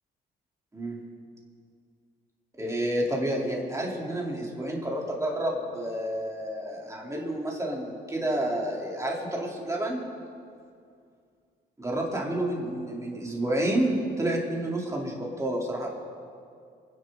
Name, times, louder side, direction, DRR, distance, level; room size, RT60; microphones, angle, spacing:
voice 1, 2.6-10.0 11.8-15.9, right 1 dB, 15° right, -2 dB, 3.4 m, -29 dB
26.0 x 10.5 x 3.9 m, 2.3 s
cardioid pair, 90°, 20 cm